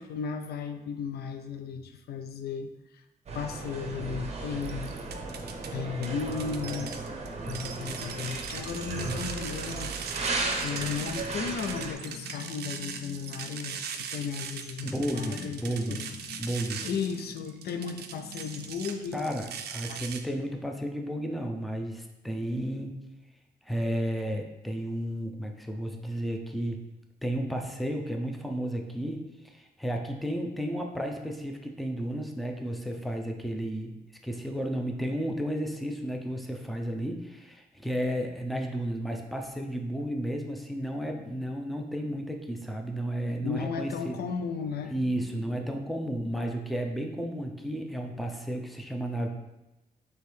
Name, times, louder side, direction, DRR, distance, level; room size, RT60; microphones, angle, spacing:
voice 1, 0.0-3.0 3.3-4.9 5.7-7.1 7.4-9.9 10.6-16.5 16.8-19.3 19.9-20.0 43.4-45.6, left 6 dB, 80° left, 7 dB, 0.4 m, -35 dB
sound 1, 3.3-12.0, right 3 dB, 40° right, 0.7 m, -35 dB
sound 2, 4.6-5.7 6.0-20.2, right 7 dB, 85° right, 0.4 m, -40 dB
voice 2, 14.8-16.1 16.4-16.8 19.1-23.0 23.6-26.8 27.2-34.0 34.2-44.2 44.9-49.3, equal, ahead, 2 dB, 0.5 m, -33 dB
4.4 x 3.0 x 3.3 m, 0.98 s
cardioid pair, 85°, 16 cm